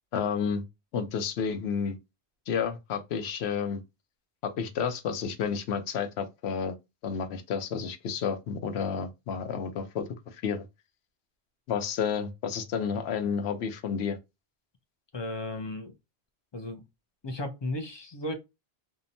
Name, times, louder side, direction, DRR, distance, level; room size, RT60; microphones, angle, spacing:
voice 1, 0.1-0.6 0.9-2.0 2.5-3.8 4.4-6.8 7.0-10.6 11.7-14.2, left 6 dB, 75° left, 0.8 m, -31 dB
voice 2, 15.1-15.9 16.5-16.8 17.2-18.3, left 1 dB, 45° left, 0.3 m, -34 dB
2.7 x 2.1 x 2.6 m
omnidirectional pair, 1.1 m